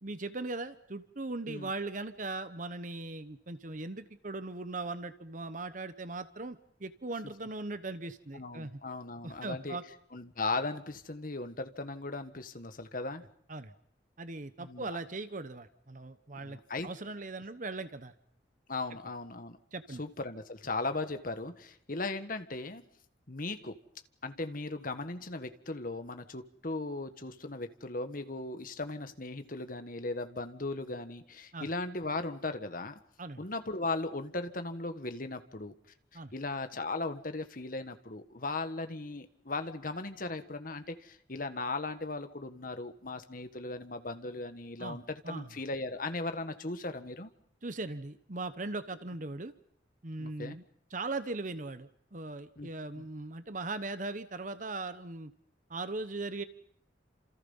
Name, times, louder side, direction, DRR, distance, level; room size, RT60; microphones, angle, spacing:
voice 1, 0.0-8.8 9.2-9.8 13.5-13.7 14.2-18.1 19.7-20.0 31.5-31.7 33.2-33.4 36.1-36.3 44.8-45.5 47.6-49.5 50.0-50.6 50.9-55.3 55.7-56.4, right 3 dB, 45° right, 11 dB, 1.1 m, -39 dB
voice 2, 8.3-9.8 10.1-13.2 14.6-14.9 16.4-16.9 18.7-19.6 20.0-22.8 23.3-23.8 24.2-33.0 33.4-35.7 36.3-47.3 50.2-50.5 52.6-52.7 53.0-53.1, left 2 dB, 50° left, 8 dB, 1.6 m, -37 dB
29.5 x 27.5 x 5.6 m, 0.63 s
head